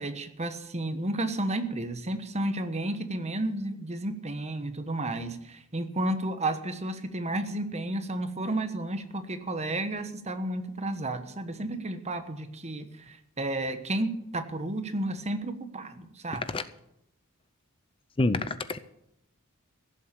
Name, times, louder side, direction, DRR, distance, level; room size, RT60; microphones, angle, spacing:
voice 1, 0.0-16.4, right 1 dB, 30° right, 9 dB, 1.2 m, -32 dB
voice 2, 16.3-16.6 18.2-18.8, left 2 dB, 25° left, 13 dB, 0.6 m, -27 dB
16.0 x 7.4 x 8.5 m, 0.80 s
head